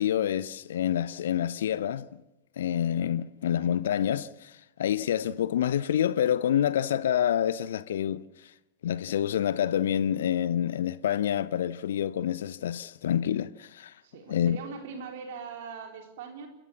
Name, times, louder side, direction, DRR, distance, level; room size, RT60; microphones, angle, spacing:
voice 1, 0.0-2.1 2.6-8.2 8.8-13.9 14.3-14.6, left 10 dB, 60° left, 0.7 m, -27 dB
voice 2, 14.0-16.5, right 6 dB, 55° right, 3.7 m, -41 dB
28.5 x 16.0 x 7.1 m
figure-of-eight pair, 90°, 0 cm